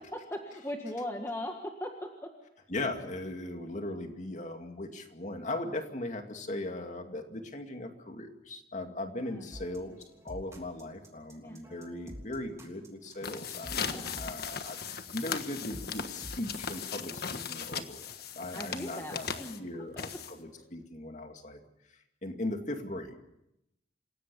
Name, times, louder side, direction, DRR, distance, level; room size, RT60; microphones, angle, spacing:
voice 1, 0.0-1.6 1.8-1.9 9.3-9.5 11.4-11.6 13.7-14.2 18.5-19.6, left 1 dB, 15° left, 2 dB, 1.7 m, -39 dB
voice 2, 2.7-21.6 21.9-23.3, left 2 dB, 40° left, 5 dB, 2.4 m, -39 dB
sound 1, 9.5-17.0, equal, 15° right, 3.2 m, -49 dB
sound 2, 13.1-20.6, left 6 dB, 55° left, 1.4 m, -38 dB
28.0 x 17.0 x 7.0 m, 0.83 s
head